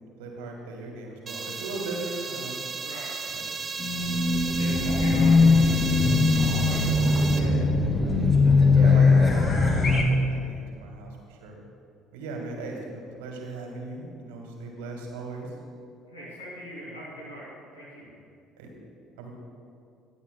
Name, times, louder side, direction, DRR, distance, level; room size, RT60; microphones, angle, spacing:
voice 1, 0.0-2.6 3.3-3.4 5.2-5.4 7.4-7.6 8.7-11.6 12.1-15.5 18.6-18.7 19.2-19.4, right 3 dB, 70° right, 1 dB, 1.7 m, -38 dB
sound 1, 1.3-7.4, right 5 dB, 30° right, 1.1 m, -34 dB
Race car auto racing / Alarm, 3.8-10.0, left 3 dB, 40° left, 2.2 m, -20 dB
voice 2, 4.5-5.7 6.0-7.3 16.1-18.1, equal, 85° left, -6 dB, 2.6 m, -41 dB
20.0 x 8.2 x 2.2 m, 2.3 s
figure-of-eight pair, 55°, 0 cm